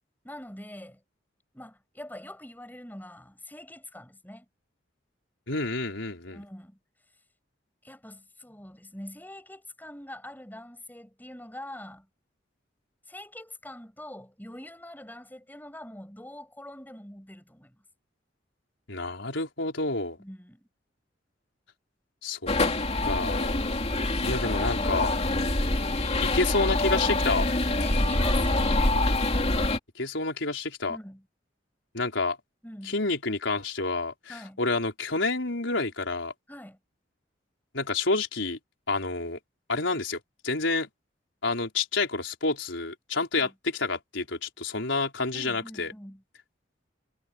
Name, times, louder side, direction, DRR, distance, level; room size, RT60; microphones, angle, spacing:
voice 1, 0.2-1.0 1.5-4.5 6.3-6.8 7.8-12.1 13.1-17.8 20.2-20.7 24.1-24.4 27.8-28.8 30.9-31.2 32.6-33.0 34.3-34.6 36.5-36.8 43.4-43.5 45.3-46.2, left 1 dB, 10° left, 6.9 m, -44 dB
voice 2, 5.5-6.4 18.9-20.2 22.2-22.5 23.0-23.6 24.2-25.1 26.2-27.5 29.9-31.0 31.9-32.4 32.8-36.3 37.7-38.6 38.9-39.4 39.7-40.9 41.4-45.9, left 3 dB, 85° left, 4.4 m, -29 dB
sound 1, 22.5-29.8, left 2 dB, 35° left, 2.8 m, -25 dB
head